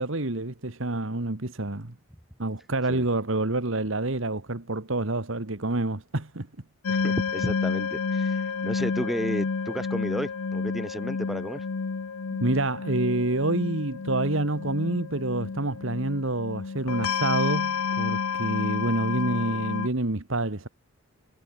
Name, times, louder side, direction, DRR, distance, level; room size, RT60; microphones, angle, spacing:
voice 1, 0.0-1.9 2.4-6.5 12.4-20.7, right 2 dB, 60° right, 1.7 m, -28 dB
sound 1, 6.8-19.9, left 5 dB, 85° left, 0.7 m, -30 dB
voice 2, 6.9-11.7, equal, ahead, 0.4 m, -33 dB
head